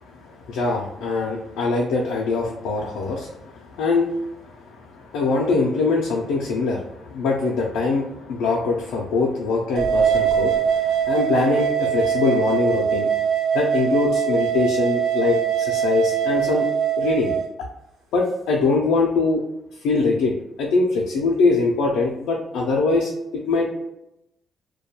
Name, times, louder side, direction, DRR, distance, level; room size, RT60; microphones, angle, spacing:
voice 1, 0.2-13.1 13.5-16.7 17.0-17.3 18.1-19.4 19.8-20.3 20.6-23.7, left 3 dB, 90° left, -1 dB, 0.3 m, -23 dB
sound 1, 9.8-17.4, right 9 dB, 80° right, 0.3 m, -22 dB
2.2 x 2.1 x 2.7 m, 0.84 s
cardioid pair, 90°, 0 cm